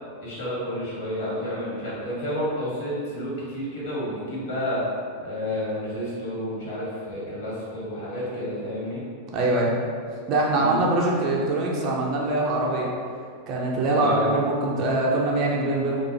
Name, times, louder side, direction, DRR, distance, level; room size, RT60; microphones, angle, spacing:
voice 1, 0.2-4.8 5.2-9.0 10.5-10.8 13.9-14.3, left 1 dB, 55° left, -8 dB, 1.0 m, -30 dB
voice 2, 9.3-9.7 10.3-12.9 13.5-16.0, right 2 dB, 35° right, -3 dB, 0.4 m, -23 dB
2.4 x 2.3 x 2.6 m, 2.2 s
figure-of-eight pair, 90°, 0 cm